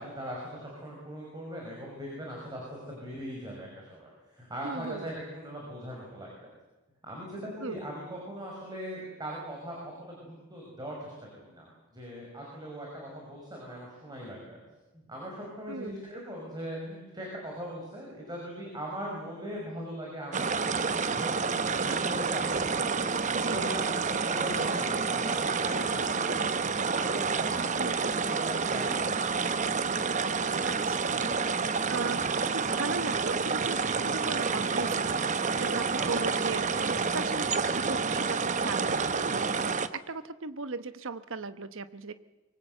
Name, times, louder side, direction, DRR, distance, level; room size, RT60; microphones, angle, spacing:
voice 1, 0.0-6.5 7.0-14.6 14.9-26.4 26.9-29.2 35.9-36.3, equal, 20° right, -2 dB, 5.8 m, -40 dB
voice 2, 4.6-5.1 7.6-7.8 15.7-16.0 23.3-23.6 27.8-28.1 30.6-31.3 31.6-42.1, right 4 dB, 60° right, 12 dB, 1.1 m, -38 dB
sound 1, 20.3-39.9, right 5 dB, 35° right, 0.8 m, -29 dB
24.5 x 22.5 x 8.1 m, 1.1 s
head